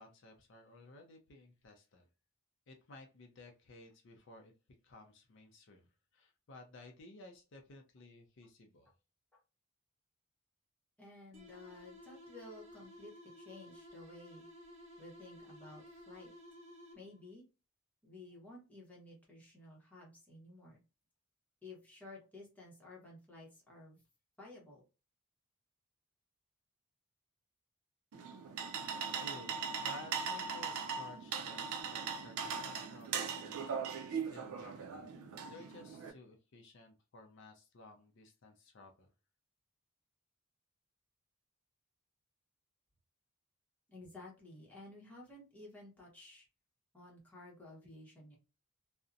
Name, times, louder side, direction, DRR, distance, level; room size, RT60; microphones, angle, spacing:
voice 1, 0.0-2.1 2.7-4.5 4.8-8.9 29.2-35.1 35.5-39.1, left 2 dB, 55° left, 0.4 m, -56 dB
voice 2, 11.0-14.5 15.0-16.3 16.9-17.4 18.0-20.8 21.6-24.0 24.4-24.9 43.9-46.5 46.9-48.4, left 2 dB, 5° left, 0.8 m, -54 dB
sound 1, 11.3-17.3, left 1 dB, 30° right, 0.8 m, -55 dB
sound 2, 28.1-36.1, right 6 dB, 85° right, 0.4 m, -40 dB
2.5 x 2.0 x 2.4 m
head